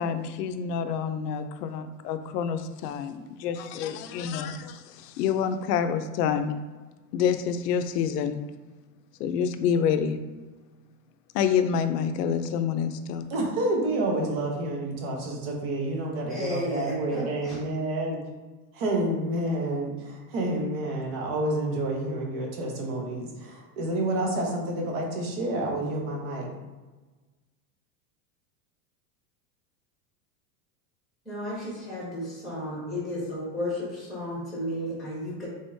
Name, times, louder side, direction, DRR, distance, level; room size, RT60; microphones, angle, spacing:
voice 1, 0.0-4.6 5.0-6.6 7.1-8.4 9.2-10.2 11.3-13.2, left 7 dB, 75° left, 9 dB, 0.6 m, -27 dB
voice 2, 13.3-18.2 18.7-26.5, right 1 dB, 40° right, 0 dB, 0.8 m, -29 dB
voice 3, 16.3-17.6 31.2-35.5, left 1 dB, ahead, -7 dB, 1.4 m, -33 dB
3.6 x 3.6 x 2.6 m, 1.2 s
supercardioid pair, 170°, 48 cm